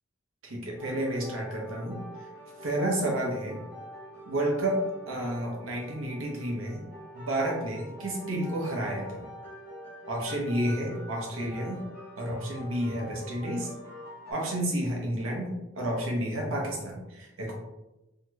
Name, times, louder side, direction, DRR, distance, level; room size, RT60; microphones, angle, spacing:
voice 1, 0.4-2.0 2.6-3.6 4.3-4.8 5.1-6.8 7.1-9.2 10.1-11.8 12.2-13.7 14.3-17.5, right 1 dB, 85° right, -1 dB, 0.8 m, -30 dB
sound 1, 0.8-14.3, equal, 10° right, 0.8 m, -45 dB
2.8 x 2.3 x 3.0 m, 0.99 s
head